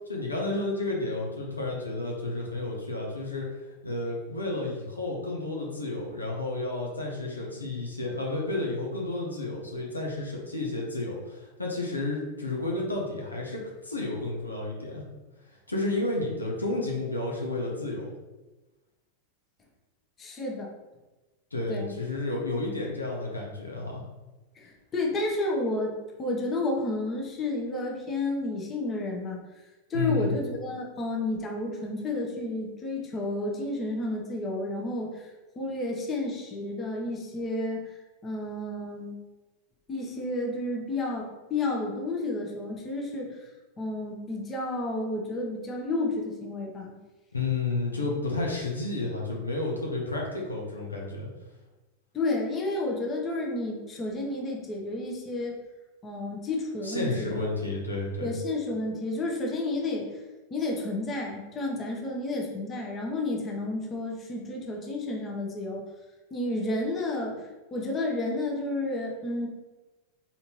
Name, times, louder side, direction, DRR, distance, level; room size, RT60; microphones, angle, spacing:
voice 1, 0.1-3.5 3.8-15.0 15.5-18.1 21.5-24.0 29.9-30.3 47.3-51.3 56.8-58.3, left 2 dB, 80° left, -2 dB, 0.9 m, -31 dB
voice 2, 20.2-20.7 21.7-22.0 24.6-29.4 29.9-35.3 35.6-39.1 39.9-43.4 43.8-47.0 52.1-55.6 56.0-57.5 58.2-60.1 60.5-65.8 66.3-69.5, left 2 dB, 25° left, -1 dB, 0.9 m, -31 dB
4.0 x 3.8 x 3.0 m, 1.1 s
figure-of-eight pair, 90°, 0 cm